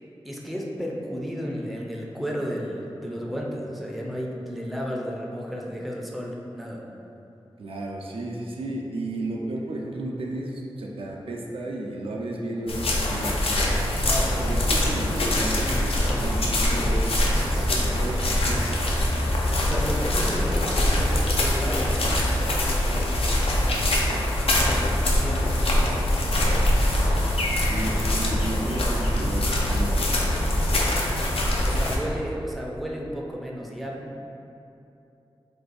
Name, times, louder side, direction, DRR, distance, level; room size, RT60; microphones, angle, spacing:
voice 1, 0.2-6.9 14.0-14.6 17.5-17.9 19.6-24.0 24.4-26.4 31.6-34.2, equal, ahead, -2 dB, 0.4 m, -33 dB
voice 2, 7.6-13.7 14.4-17.1 17.3-18.9 27.6-29.5 29.7-30.3, right 2 dB, 65° right, -1 dB, 0.4 m, -33 dB
sound 1, 12.7-32.0, left 1 dB, 70° left, 0.4 m, -23 dB
2.6 x 2.3 x 3.9 m, 2.8 s
cardioid pair, 40°, 10 cm